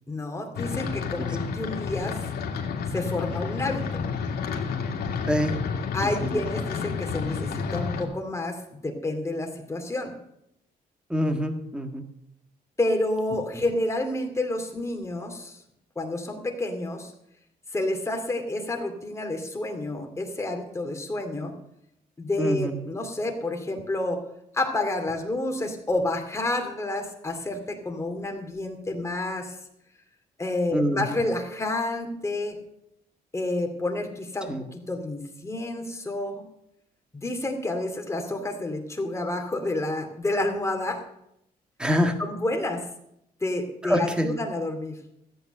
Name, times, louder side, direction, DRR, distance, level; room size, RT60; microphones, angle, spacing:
voice 1, 0.1-2.2 2.9-3.8 5.9-10.1 12.8-15.6 16.0-17.1 17.7-21.5 22.2-24.2 24.5-29.6 30.4-32.5 33.3-36.4 37.1-41.0 42.2-42.8 43.4-45.0, left 2 dB, 15° left, 3 dB, 2.5 m, -29 dB
sound 1, 0.5-8.0, left 5 dB, 85° left, 2.1 m, -30 dB
voice 2, 11.1-12.0 22.4-22.8 30.7-31.2 34.5-34.7 41.8-42.1 43.8-44.4, equal, 5° right, 5 dB, 1.6 m, -25 dB
14.0 x 8.6 x 6.5 m, 0.80 s
cardioid pair, 110°, 16 cm